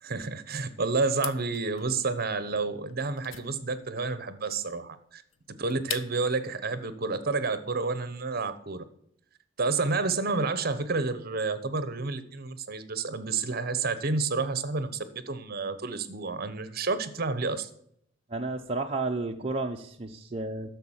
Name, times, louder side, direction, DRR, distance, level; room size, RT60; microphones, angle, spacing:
voice 1, 0.0-5.2 5.5-8.8 9.6-17.7, right 3 dB, 55° right, 13 dB, 1.0 m, -30 dB
sound 1, 1.1-6.4, left 11 dB, 85° left, 0.6 m, -42 dB
voice 2, 18.3-20.7, right 3 dB, 30° right, 2 dB, 0.7 m, -32 dB
10.5 x 7.0 x 7.3 m, 0.70 s
head